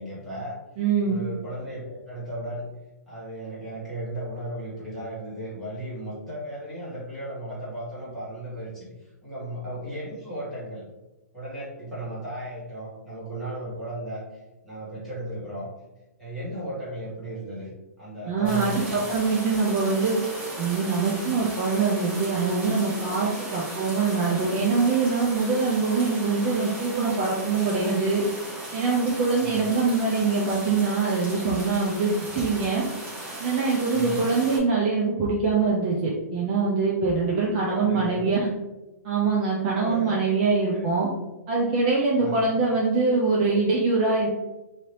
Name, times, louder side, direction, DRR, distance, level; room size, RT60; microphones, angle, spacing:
voice 1, 0.0-0.6 1.0-2.7 3.1-8.9 9.2-10.8 11.3-14.2 14.6-15.7 16.2-17.7 18.0-18.9 29.4-29.7 33.9-34.3 37.7-38.3 39.8-40.1 40.7-40.9 42.2-42.5, right 1 dB, ahead, -11 dB, 1.3 m, -35 dB
voice 2, 0.8-1.2 18.3-20.2 20.6-28.2 28.7-32.8 33.4-38.5 39.0-41.1 41.5-44.3, right 4 dB, 30° right, -3 dB, 0.5 m, -23 dB
sound 1, 18.4-34.6, right 1 dB, 15° right, 0.8 m, -37 dB
2.8 x 2.7 x 3.2 m, 1.1 s
hypercardioid pair, 160°, 9 cm